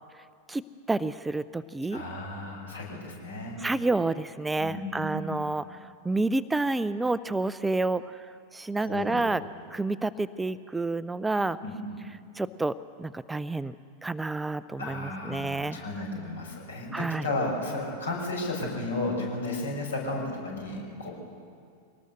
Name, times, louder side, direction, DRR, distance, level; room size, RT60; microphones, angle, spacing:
voice 1, 0.9-2.0 3.6-5.8 6.0-8.0 8.5-9.4 9.7-11.6 12.4-12.7 13.0-13.7 14.0-15.8 16.9-17.2, right 2 dB, 10° right, 15 dB, 0.4 m, -29 dB
voice 2, 1.9-3.6 4.6-5.4 8.8-9.3 11.6-12.0 14.8-21.1, left 2 dB, 70° left, 0 dB, 5.9 m, -33 dB
23.5 x 19.5 x 6.6 m, 2.3 s
figure-of-eight pair, 90°, 0 cm